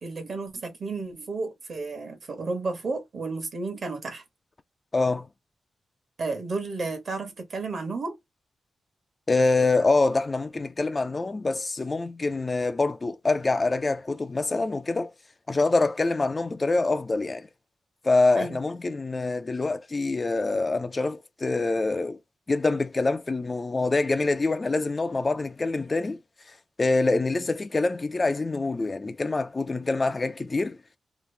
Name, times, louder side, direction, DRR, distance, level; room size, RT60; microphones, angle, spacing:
voice 1, 0.0-4.2 6.2-8.2 18.3-18.6, right 3 dB, 50° right, 1.1 m, -32 dB
voice 2, 4.9-5.3 9.3-15.1 15.5-17.5 18.0-22.2 22.5-26.2 26.8-30.8, left 3 dB, 25° left, 0.3 m, -25 dB
3.0 x 2.5 x 3.2 m
wide cardioid pair, 135°, 0 cm